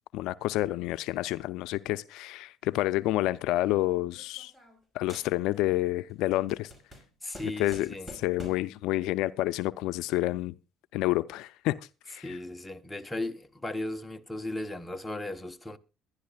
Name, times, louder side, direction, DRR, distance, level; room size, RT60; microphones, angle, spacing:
voice 1, 0.1-4.5 4.9-6.7 7.6-10.6 10.9-11.8 12.1-12.4, left 17 dB, 75° left, 0.5 m, -29 dB
sound 1, 3.5-4.8 5.1-5.8 6.1-8.8, equal, 15° right, 5.3 m, -49 dB
voice 2, 7.2-8.1 12.2-15.8, left 1 dB, 10° left, 1.0 m, -36 dB
22.0 x 11.5 x 2.4 m
cardioid pair, 115°, 0 cm